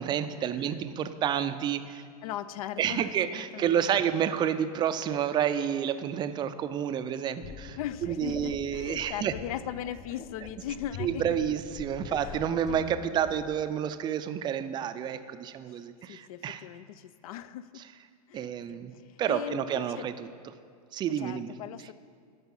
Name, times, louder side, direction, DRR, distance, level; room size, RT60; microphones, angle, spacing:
voice 1, 0.0-2.1 2.8-9.3 11.0-16.6 18.3-18.9 19.2-20.3 20.9-21.5, right 9 dB, 20° right, 11 dB, 0.4 m, -29 dB
voice 2, 2.2-3.9 7.8-11.4 12.1-13.2 15.7-15.8 16.1-17.9 18.3-20.1 21.2-21.9, left 11 dB, 65° left, 16 dB, 0.4 m, -39 dB
sound 1, 7.4-13.7, left 6 dB, 35° left, 0.7 m, -44 dB
12.0 x 5.5 x 5.5 m, 2.1 s
hypercardioid pair, 125°, 20 cm